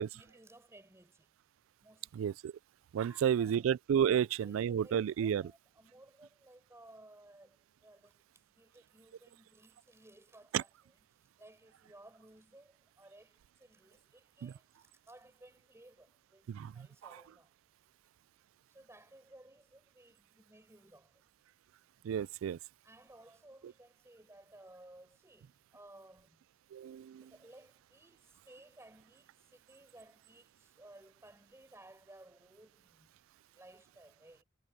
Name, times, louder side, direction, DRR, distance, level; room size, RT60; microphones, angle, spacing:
voice 1, 0.0-1.3 1.8-2.2 3.0-3.6 4.1-8.2 8.5-11.0 11.4-17.5 18.7-21.2 22.8-26.4 27.1-33.1 33.5-34.4, right 1 dB, 15° right, 7.7 m, -59 dB
voice 2, 2.2-2.5 2.9-5.4 10.5-10.6 14.4-14.5 16.5-16.9 22.0-22.6 26.7-27.2, right 8 dB, 85° right, 0.3 m, -31 dB
head